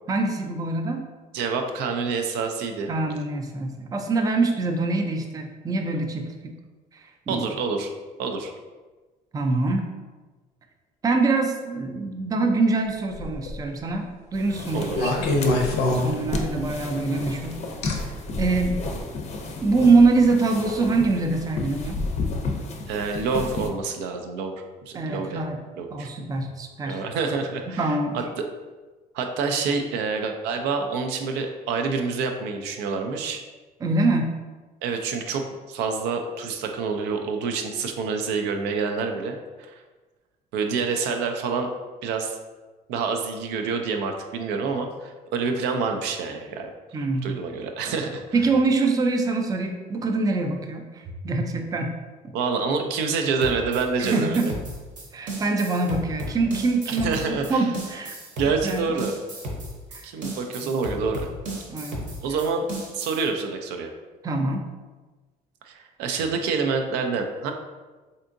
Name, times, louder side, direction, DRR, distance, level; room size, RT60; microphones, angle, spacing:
voice 1, 0.1-1.0 2.9-6.6 6.9-7.4 9.3-9.9 11.0-15.3 16.0-17.6 17.8-18.1 18.4-18.8 19.6-22.0 24.9-25.6 25.9-27.0 27.7-28.2 33.8-34.3 46.9-47.3 48.3-51.9 54.0-54.5 55.1-57.2 57.5-58.1 58.6-58.9 59.9-60.1 60.6-60.7 61.7-62.1 64.2-64.7, right 3 dB, 20° right, 4 dB, 0.4 m, -24 dB
voice 2, 1.3-2.9 7.3-7.9 8.2-8.5 14.7-15.1 22.9-24.5 24.8-25.4 25.8-26.1 26.9-28.4 29.1-33.4 34.8-39.8 40.5-41.7 42.0-42.4 42.9-48.2 52.3-54.5 56.9-57.7 58.4-59.1 60.0-61.3 62.2-62.6 62.9-63.9 65.6-67.5, right 4 dB, 90° right, 5 dB, 0.4 m, -27 dB
sound 1, 13.1-13.6 14.9-16.7 17.8-17.9 18.8-19.0, left 2 dB, 90° left, 0.6 m, -24 dB
sound 2, 14.3-23.7, left 3 dB, 40° left, 0.5 m, -32 dB
sound 3, 53.4-63.3, right 1 dB, 50° right, 0.8 m, -34 dB
3.4 x 2.6 x 2.5 m, 1.3 s
cardioid pair, 110°, 17 cm